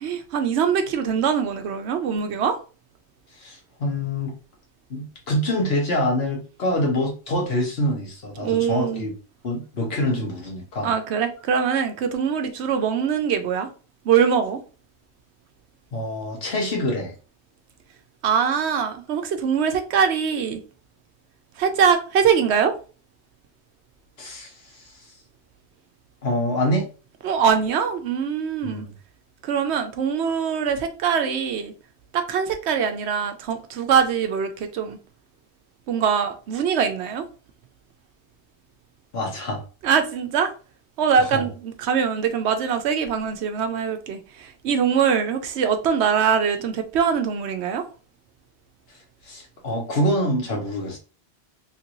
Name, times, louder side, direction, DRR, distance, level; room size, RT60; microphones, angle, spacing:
voice 1, 0.0-2.6 8.4-9.0 10.8-13.7 14.0-14.6 18.2-20.6 21.6-22.7 27.2-28.9 29.4-31.7 32.1-35.0 35.9-37.2 39.8-40.5 41.0-47.8, right 7 dB, 80° right, 0.9 m, -23 dB
voice 2, 3.4-4.3 4.9-9.1 9.4-10.9 15.9-17.1 24.2-24.5 26.2-26.9 28.6-28.9 39.1-39.6 41.2-41.5 49.2-51.0, left 1 dB, 65° left, 1.3 m, -25 dB
3.2 x 2.6 x 2.9 m
omnidirectional pair, 1.1 m